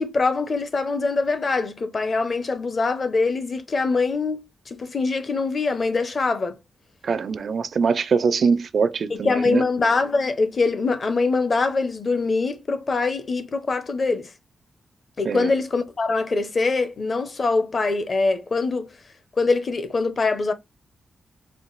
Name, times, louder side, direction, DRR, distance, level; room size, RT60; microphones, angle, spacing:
voice 1, 0.0-6.6 9.1-14.3 15.2-18.9 19.4-20.5, left 3 dB, 35° left, 0.7 m, -23 dB
voice 2, 7.0-9.6 15.2-15.5, right 5 dB, 55° right, 0.4 m, -22 dB
4.5 x 2.2 x 3.9 m
wide cardioid pair, 160°, 0 cm